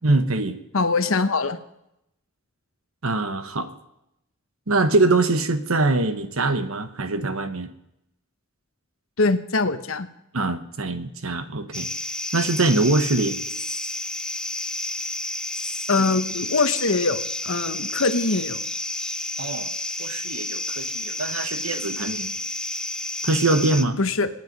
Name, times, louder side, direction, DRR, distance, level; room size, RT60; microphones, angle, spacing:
voice 1, 0.0-0.6 3.0-3.7 4.7-7.7 10.3-11.9 12.3-13.4 19.4-19.7 20.0-22.3 23.2-24.0, right 2 dB, 75° right, 9 dB, 1.3 m, -23 dB
voice 2, 0.7-1.6 9.2-10.1 15.9-18.6 24.0-24.3, left 3 dB, 70° left, 10 dB, 1.1 m, -23 dB
sound 1, 11.7-23.8, left 1 dB, 5° left, 0.6 m, -30 dB
26.5 x 9.4 x 5.4 m, 0.83 s
head